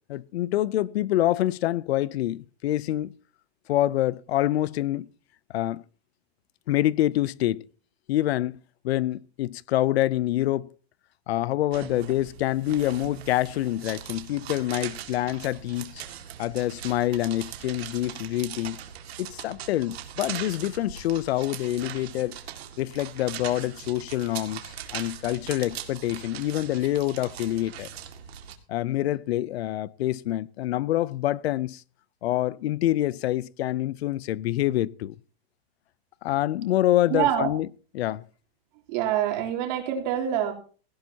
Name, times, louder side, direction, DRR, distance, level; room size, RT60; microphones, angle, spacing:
voice 1, 0.1-3.1 3.7-5.1 5.5-5.8 6.7-7.6 8.1-8.6 8.8-10.7 11.3-16.0 16.4-18.8 19.2-22.4 22.8-27.9 28.7-31.8 32.2-35.1 36.2-37.7 37.9-38.2, left 14 dB, 80° left, 0.6 m, -26 dB
sound 1, 11.7-28.6, right 9 dB, 80° right, 2.2 m, -40 dB
voice 2, 37.1-37.5 38.9-40.5, right 10 dB, 45° right, 3.4 m, -25 dB
17.0 x 16.0 x 2.8 m
supercardioid pair, 170°, 31 cm